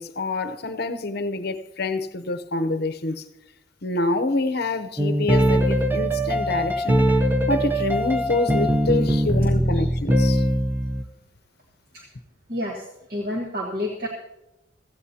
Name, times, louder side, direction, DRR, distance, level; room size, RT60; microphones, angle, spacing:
voice 1, 0.0-3.2 3.8-7.0 7.5-10.4, left 2 dB, 50° left, 0.8 m, -26 dB
sound 1, 5.0-11.0, equal, 10° right, 0.7 m, -21 dB
voice 2, 12.5-14.1, left 1 dB, 50° right, 1.8 m, -30 dB
16.0 x 15.0 x 2.9 m
head